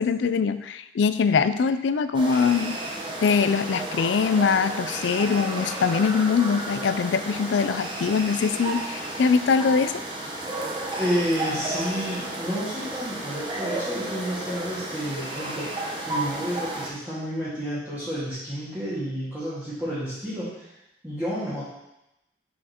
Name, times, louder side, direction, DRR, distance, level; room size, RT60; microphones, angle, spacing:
voice 1, 0.0-2.8 3.2-10.0, left 5 dB, 80° left, 12 dB, 0.4 m, -23 dB
sound 1, 2.1-16.9, right 2 dB, 25° right, 1.0 m, -32 dB
voice 2, 11.0-20.7 21.0-21.8, equal, 10° right, -12 dB, 1.8 m, -30 dB
7.0 x 6.3 x 2.9 m, 0.88 s
head